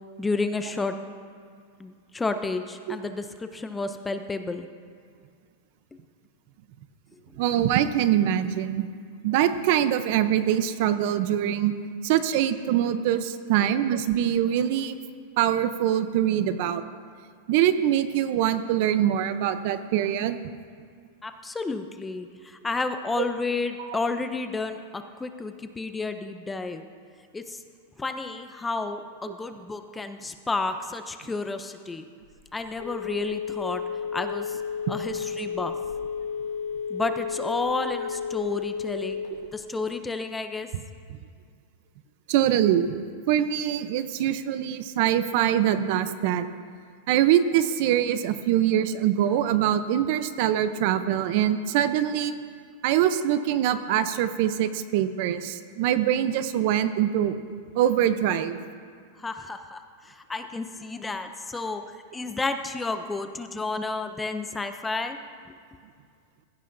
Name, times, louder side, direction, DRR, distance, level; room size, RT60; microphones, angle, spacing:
voice 1, 0.2-0.9 1.8-4.7 7.1-7.2 21.2-26.8 27.3-27.6 28.0-32.1 32.5-34.6 34.9-35.7 36.9-39.2 39.5-40.7 59.2-61.8 62.1-65.2 65.5-65.6, left 3 dB, 10° left, 8 dB, 0.4 m, -31 dB
voice 2, 7.4-8.9 9.2-11.7 12.0-15.0 15.4-16.8 17.5-20.4 23.9-24.0 29.3-29.4 42.3-42.9 43.3-46.5 47.1-52.3 52.8-57.3 57.8-58.6, right 11 dB, 50° right, 11 dB, 0.6 m, -23 dB
Telephone, 32.2-39.6, left 6 dB, 85° left, 2.8 m, -32 dB
17.0 x 15.5 x 2.6 m, 2.1 s
supercardioid pair, 160°, 0 cm